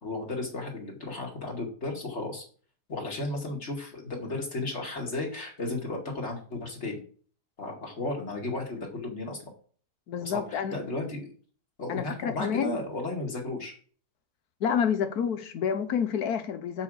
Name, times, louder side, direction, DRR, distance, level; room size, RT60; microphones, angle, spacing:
voice 1, 0.0-2.4 2.9-7.0 7.6-9.4 10.2-11.3 11.8-13.8, left 2 dB, 40° left, 2.4 m, -34 dB
voice 2, 10.1-10.7 11.9-12.8 14.6-16.8, left 7 dB, 65° left, 1.4 m, -29 dB
6.6 x 5.0 x 6.3 m
omnidirectional pair, 1.8 m